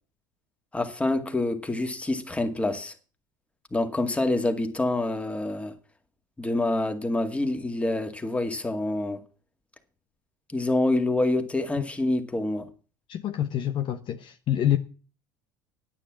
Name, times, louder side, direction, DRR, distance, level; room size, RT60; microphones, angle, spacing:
voice 1, 0.7-2.9 3.7-5.7 6.4-9.2 10.5-12.7, left 2 dB, 10° left, 2.2 m, -26 dB
voice 2, 13.1-14.8, left 11 dB, 50° left, 1.0 m, -26 dB
10.0 x 9.0 x 7.4 m
hypercardioid pair, 80°, 11 cm